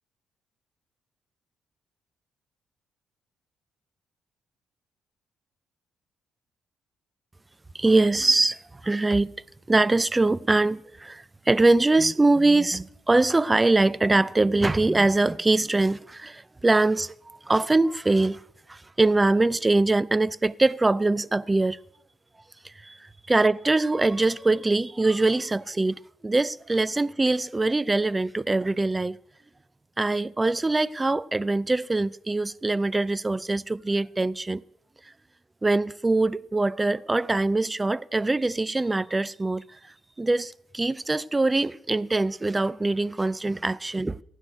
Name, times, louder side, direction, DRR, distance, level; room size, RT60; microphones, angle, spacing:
voice 1, 7.7-9.3 9.7-18.4 18.7-21.8 22.6-29.2 30.0-34.6 35.6-39.6 40.2-44.2, right 2 dB, 20° right, 0.4 m, -23 dB
16.0 x 6.5 x 10.0 m
cardioid pair, 90°, 0 cm